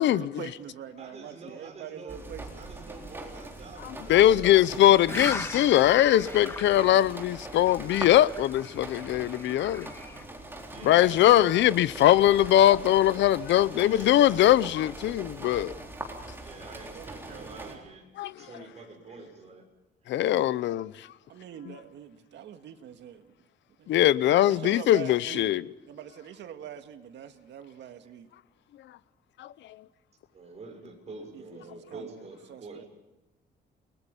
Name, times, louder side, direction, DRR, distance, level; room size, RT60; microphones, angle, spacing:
voice 1, 0.0-2.7 16.6-17.8 21.3-23.4 23.8-23.9 24.4-25.5 25.9-28.3 31.3-32.8, right 9 dB, 85° right, 2.0 m, -44 dB
voice 2, 1.0-2.3 2.5-4.7 10.7-11.3 13.5-14.4 16.3-18.0 18.4-19.6 30.3-32.9, right 3 dB, 35° right, 6.4 m, -46 dB
sound 1, 2.1-17.8, right 2 dB, 10° right, 4.0 m, -42 dB
voice 3, 3.8-9.9 10.8-15.7 18.2-18.5 20.1-21.1 23.9-25.6 29.4-29.5, left 13 dB, 85° left, 0.7 m, -21 dB
sound 2, 5.1-10.2, left 2 dB, 15° left, 2.1 m, -39 dB
29.5 x 20.5 x 5.4 m
cardioid pair, 145°, 18 cm